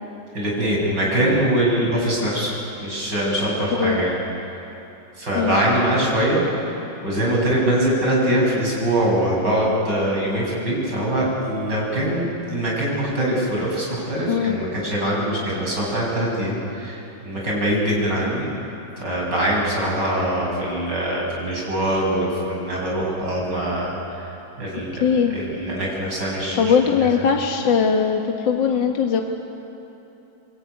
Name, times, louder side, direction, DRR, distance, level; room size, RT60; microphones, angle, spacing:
voice 1, 0.3-2.5 2.8-4.2 5.2-6.4 7.0-18.5 19.0-24.3 24.6-25.0 25.3-26.7, right 1 dB, 55° right, -3 dB, 7.9 m, -23 dB
voice 2, 5.4-5.7 14.3-14.6 25.0-25.3 26.6-29.2, left 6 dB, 65° left, 2 dB, 2.2 m, -20 dB
27.0 x 22.5 x 9.5 m, 3.0 s
omnidirectional pair, 2.2 m